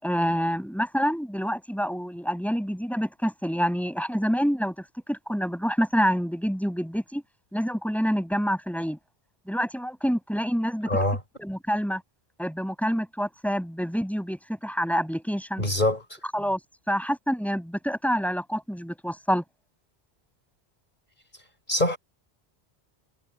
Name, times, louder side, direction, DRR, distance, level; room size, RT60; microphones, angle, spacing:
voice 1, 0.0-4.7 5.1-7.2 7.5-9.0 9.5-10.9 11.4-12.0 12.4-15.6 16.3-16.6 16.9-19.4, equal, ahead, 6.5 m, -27 dB
voice 2, 10.9-11.2 15.6-16.0 21.7-22.0, left 1 dB, 45° left, 5.5 m, -23 dB
omnidirectional pair, 1.1 m